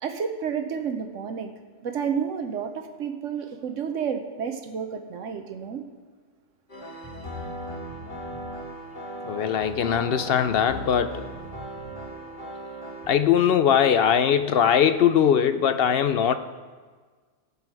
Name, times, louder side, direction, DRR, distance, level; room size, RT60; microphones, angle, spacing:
voice 1, 0.0-1.5 1.8-5.8, right 7 dB, 80° right, 6 dB, 1.2 m, -30 dB
sound 1, 6.7-13.1, right 1 dB, 40° left, 3.6 m, -37 dB
voice 2, 9.3-11.2 13.1-16.3, left 8 dB, 60° left, 10 dB, 0.7 m, -21 dB
16.0 x 8.1 x 4.7 m, 1.5 s
omnidirectional pair, 1.3 m